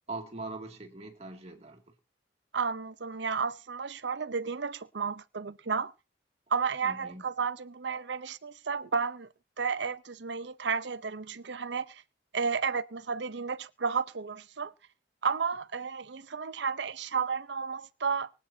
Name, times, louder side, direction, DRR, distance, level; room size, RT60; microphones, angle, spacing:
voice 1, 0.1-1.9 6.8-7.2, right 2 dB, 35° right, 2.5 m, -42 dB
voice 2, 2.5-5.9 6.5-9.3 9.6-12.0 12.3-14.7 15.2-18.3, right 5 dB, 70° right, 0.8 m, -32 dB
24.0 x 8.9 x 2.8 m
head